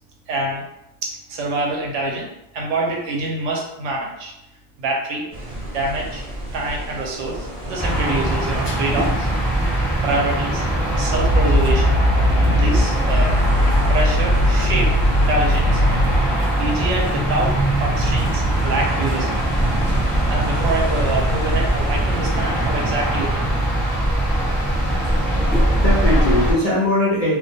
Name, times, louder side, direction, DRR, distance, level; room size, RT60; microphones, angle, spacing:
voice 1, 0.3-0.6 1.0-2.3 2.5-4.3 4.8-5.3 5.7-6.2 6.5-9.3 10.0-10.6 11.0-12.0 12.4-13.3 13.9-15.8 16.6-19.4 20.3-23.5, right 2 dB, 70° right, 0 dB, 0.8 m, -25 dB
sound 1, 5.3-23.5, right 1 dB, 35° right, 0.7 m, -30 dB
sound 2, 7.8-26.5, right 1 dB, ahead, 0.8 m, -21 dB
sound 3, 11.2-12.8 13.1-16.2, left 1 dB, 55° left, 0.7 m, -18 dB
voice 2, 25.0-27.4, left 1 dB, 85° left, -7 dB, 0.3 m, -21 dB
2.3 x 2.2 x 2.6 m, 0.86 s
omnidirectional pair, 1.4 m